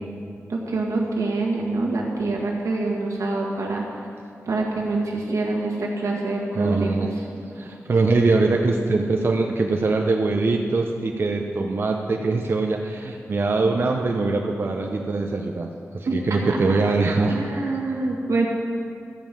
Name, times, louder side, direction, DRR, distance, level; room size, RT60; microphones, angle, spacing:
voice 1, 0.5-3.8 4.4-7.2 16.0-16.1 16.5-16.6 17.3-18.5, right 3 dB, 90° right, -1 dB, 1.8 m, -25 dB
voice 2, 6.5-7.1 7.6-17.4, right 3 dB, 50° right, 1 dB, 0.6 m, -22 dB
13.5 x 5.3 x 7.4 m, 2.4 s
wide cardioid pair, 155°, 5 cm